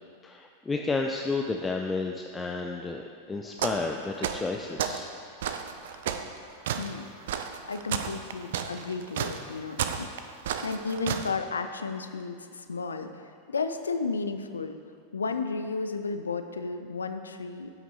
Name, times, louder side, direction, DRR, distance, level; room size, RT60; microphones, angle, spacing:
voice 1, 0.2-5.1, left 3 dB, 15° left, 2 dB, 0.4 m, -31 dB
sound 1, 3.6-3.9 4.2-5.0 5.4-11.3, right 8 dB, 55° right, 0.4 m, -32 dB
voice 2, 6.8-7.1 7.7-10.1 10.6-14.7 15.1-17.7, left 4 dB, 75° left, 8 dB, 0.4 m, -33 dB
12.5 x 5.9 x 2.7 m, 2.2 s
figure-of-eight pair, 90°, 0 cm